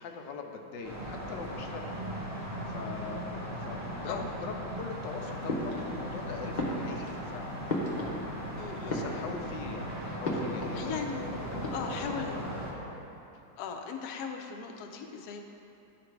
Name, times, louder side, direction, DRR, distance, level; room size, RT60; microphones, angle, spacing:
voice 1, 0.0-2.0 2.7-8.3 8.9-11.0 11.5-12.0 12.3-13.0, left 5 dB, 90° left, 3 dB, 1.4 m, -42 dB
sound 1, 0.8-12.7, equal, 15° right, 0.7 m, -38 dB
sound 2, 0.9-10.2, right 3 dB, 70° right, 0.6 m, -48 dB
sound 3, 5.5-6.2 6.6-8.5 8.8-9.6 10.2-10.9 11.1-11.2 11.5-12.2, left 1 dB, 35° left, 0.8 m, -35 dB
voice 2, 8.6-9.0 10.7-11.2 11.7-12.4 13.6-15.4, left 6 dB, 70° left, 3 dB, 1.1 m, -38 dB
11.0 x 3.9 x 4.6 m, 2.9 s
omnidirectional pair, 1.9 m